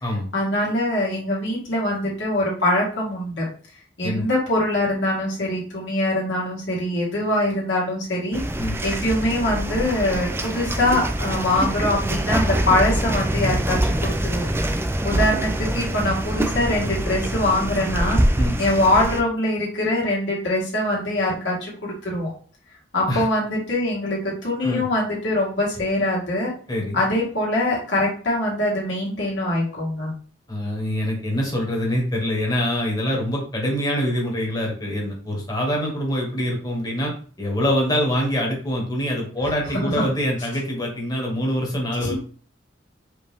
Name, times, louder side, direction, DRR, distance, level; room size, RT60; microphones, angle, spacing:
voice 1, 0.3-3.5 4.0-8.4 8.8-14.5 15.0-18.2 18.6-22.3 22.9-26.5 26.9-30.1 39.8-40.0 42.0-42.2, left 1 dB, 75° left, -4 dB, 2.0 m, -23 dB
sound 1, 8.3-19.2, right 1 dB, 15° right, 0.5 m, -24 dB
voice 2, 26.7-27.0 30.5-37.1 37.4-42.2, equal, 20° left, -2 dB, 1.5 m, -24 dB
5.0 x 2.8 x 3.5 m, 0.42 s
head